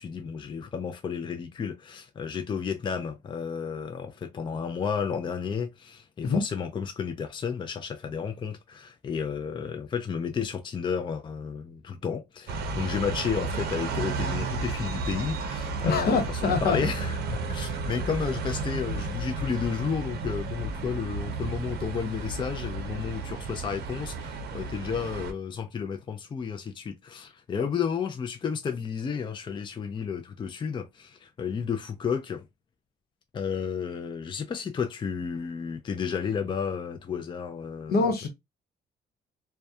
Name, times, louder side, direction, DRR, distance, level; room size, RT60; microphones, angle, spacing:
voice 1, 0.0-32.5 33.3-38.1, left 6 dB, 30° left, 0.4 m, -32 dB
sound 1, 12.5-25.3, right 4 dB, 80° right, 0.5 m, -33 dB
voice 2, 15.8-16.8 27.6-27.7 37.9-38.3, left 4 dB, 75° left, 0.8 m, -24 dB
2.2 x 2.2 x 2.6 m
cardioid pair, 80°, 16 cm